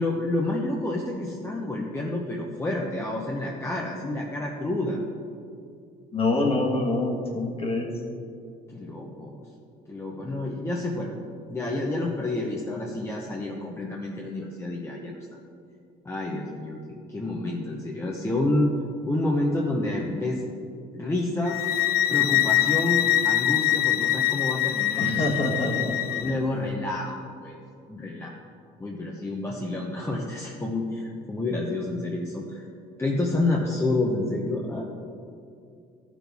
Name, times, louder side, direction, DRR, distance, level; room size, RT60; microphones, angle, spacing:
voice 1, 0.0-5.0 8.7-9.4 9.9-11.1 11.5-15.2 16.0-16.8 17.1-18.7 19.1-20.4 20.9-21.6 22.1-25.4 26.1-27.6 27.9-28.3 28.8-32.6 33.0-34.8, left 2 dB, 15° left, -2 dB, 0.9 m, -29 dB
voice 2, 6.1-7.9 25.0-25.9, left 2 dB, 35° left, 0 dB, 1.6 m, -25 dB
sound 1, 21.5-26.4, left 13 dB, 70° left, 0.4 m, -24 dB
13.0 x 6.1 x 3.5 m, 2.5 s
cardioid pair, 110°, 17 cm